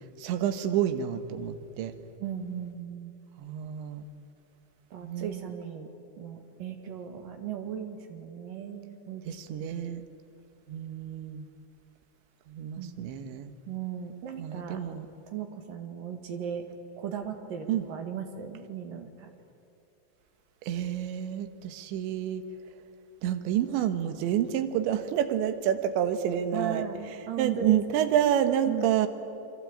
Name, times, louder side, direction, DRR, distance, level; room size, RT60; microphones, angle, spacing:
voice 1, 0.2-1.9 3.4-4.1 5.0-5.4 9.3-10.0 10.7-11.5 12.5-13.5 14.4-15.1 17.7-17.8 20.6-22.4 23.2-26.8 27.4-29.1, right 10 dB, 75° right, 9 dB, 3.5 m, -28 dB
voice 2, 2.2-3.1 4.9-5.9 6.2-9.2 9.6-9.7 12.8-13.0 13.7-14.8 15.3-16.6 17.0-19.3 26.5-28.1 28.7-28.9, right 8 dB, 55° right, 5 dB, 3.0 m, -37 dB
28.0 x 24.0 x 8.8 m, 2.6 s
omnidirectional pair, 5.4 m